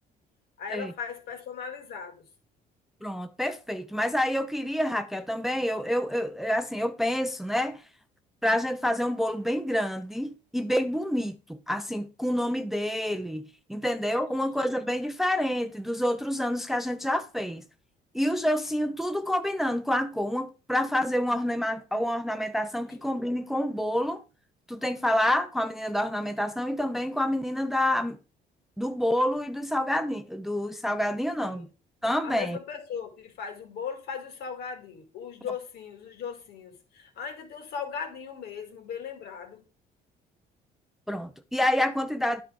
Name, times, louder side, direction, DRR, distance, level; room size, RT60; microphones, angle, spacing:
voice 1, 0.6-2.3 31.4-31.7 32.2-39.6, left 6 dB, 70° left, 2.2 m, -38 dB
voice 2, 3.0-7.8 8.4-17.6 18.1-24.2 24.7-28.2 28.8-31.7 32.0-32.6 41.1-42.4, left 1 dB, ahead, 0.5 m, -28 dB
10.0 x 4.6 x 5.1 m
cardioid pair, 110°, 17 cm